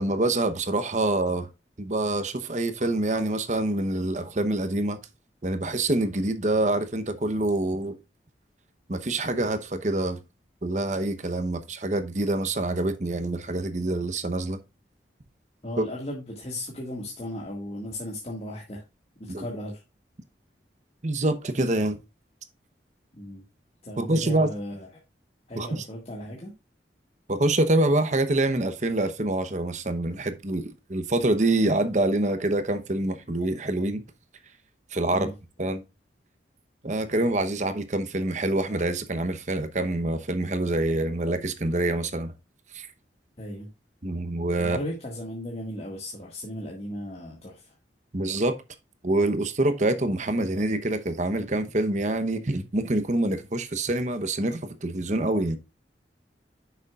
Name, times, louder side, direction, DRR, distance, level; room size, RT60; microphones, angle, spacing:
voice 1, 0.0-1.5 1.8-5.0 5.4-8.0 8.9-10.2 10.6-14.6 15.8-15.9 19.3-19.4 21.0-22.0 24.0-24.5 25.5-25.8 27.3-34.0 34.9-35.3 35.6-35.8 36.8-42.3 42.7-42.9 44.0-44.8 48.1-48.5 49.0-55.6, right 2 dB, 40° right, 0.9 m, -26 dB
voice 2, 15.6-18.8 19.2-19.8 23.1-23.4 23.8-24.9 25.5-26.5 35.1-35.3 43.4-43.7 44.6-47.8, left 1 dB, 35° left, 1.8 m, -36 dB
9.4 x 6.7 x 2.4 m
head